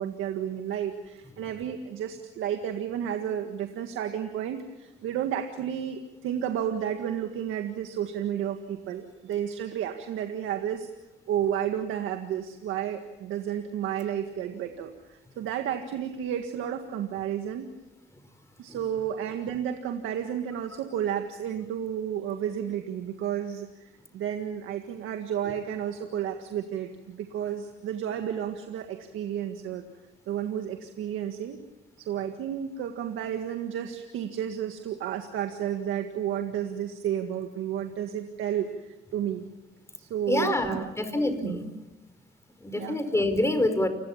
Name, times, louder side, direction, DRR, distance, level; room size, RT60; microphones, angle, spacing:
voice 1, 0.0-10.9 11.3-17.7 18.6-29.9 30.3-31.6 32.0-39.4 40.0-40.9 41.4-41.6 42.7-43.0, right 9 dB, 90° right, 5 dB, 1.8 m, -32 dB
voice 2, 40.3-41.7 42.6-43.9, left 1 dB, 15° left, 9 dB, 4.8 m, -26 dB
29.5 x 21.0 x 7.3 m, 1.0 s
cardioid pair, 90°, 20 cm